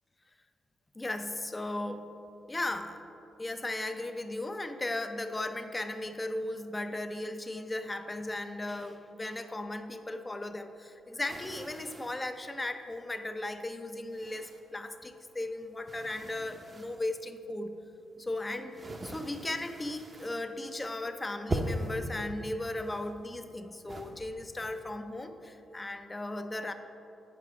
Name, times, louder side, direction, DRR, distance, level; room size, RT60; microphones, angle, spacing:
voice 1, 1.0-2.1 2.5-3.0 3.4-17.8 18.2-26.7, left 2 dB, 20° left, 7 dB, 0.6 m, -36 dB
sound 1, 11.3-12.3 13.0-13.1 14.1-14.9 15.3-17.1 17.8-20.5 20.8-21.1 21.5-22.1 22.7-23.5 23.9-24.8, right 1 dB, 35° right, 0.8 m, -40 dB
8.5 x 4.7 x 4.8 m, 2.8 s
cardioid pair, 65°, 0 cm